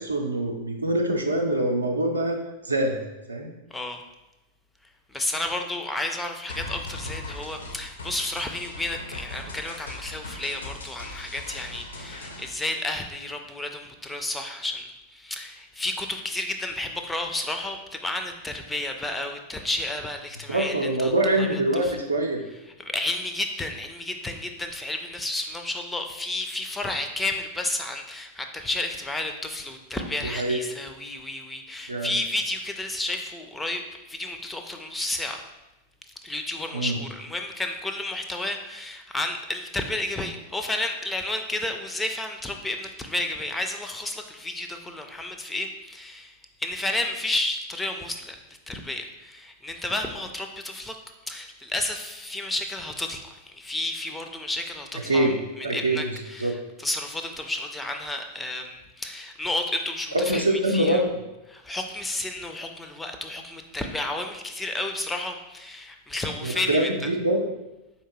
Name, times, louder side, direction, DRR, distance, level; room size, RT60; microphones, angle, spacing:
voice 1, 0.0-2.4 2.6-3.0 3.3-3.5 20.5-22.4 30.2-30.6 31.9-32.2 36.7-36.9 55.1-55.3 55.6-56.5 60.1-61.1 66.4-67.4, right 1 dB, 80° right, 2 dB, 0.5 m, -24 dB
voice 2, 3.7-4.0 5.1-20.7 21.0-21.1 21.4-22.0 22.8-35.4 36.2-51.0 51.3-55.3 55.6-61.0 61.5-67.0, left 2 dB, 10° left, 5 dB, 0.4 m, -31 dB
sound 1, 6.5-12.5, left 2 dB, 70° left, 0.5 m, -39 dB
4.4 x 2.8 x 2.9 m, 0.98 s
figure-of-eight pair, 90°, 0 cm